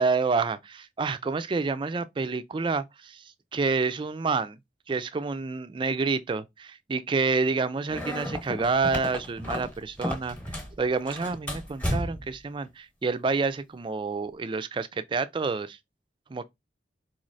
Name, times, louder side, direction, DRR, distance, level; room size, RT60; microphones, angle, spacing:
voice 1, 0.0-3.2 3.5-4.6 4.9-10.4 10.8-15.8 16.3-16.4, right 4 dB, 25° right, 0.3 m, -28 dB
sound 1, 7.9-10.8 11.1-12.4, left 1 dB, 10° left, 1.0 m, -33 dB
4.0 x 3.1 x 2.6 m
head